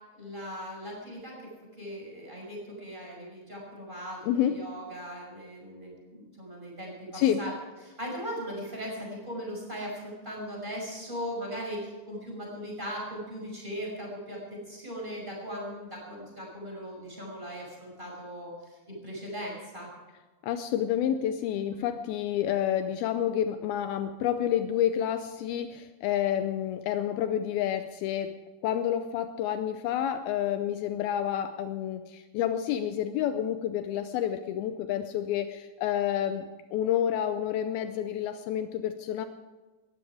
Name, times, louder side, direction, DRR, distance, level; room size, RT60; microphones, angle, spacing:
voice 1, 0.1-1.5 1.8-7.5 7.8-19.9, equal, 10° right, -2 dB, 5.6 m, -39 dB
voice 2, 20.4-39.3, left 10 dB, 80° left, 9 dB, 2.5 m, -29 dB
19.5 x 14.0 x 4.9 m, 1.3 s
omnidirectional pair, 4.5 m